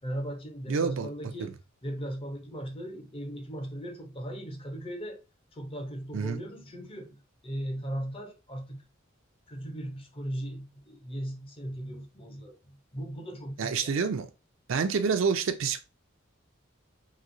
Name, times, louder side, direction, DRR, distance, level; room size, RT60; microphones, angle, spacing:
voice 1, 0.0-5.2 5.5-8.9 9.5-14.0, equal, 25° left, 0.6 m, -38 dB
voice 2, 0.7-1.1 1.4-1.5 6.1-6.4 13.6-14.3 14.7-15.8, right 5 dB, 70° right, 0.4 m, -28 dB
3.0 x 2.7 x 2.6 m
head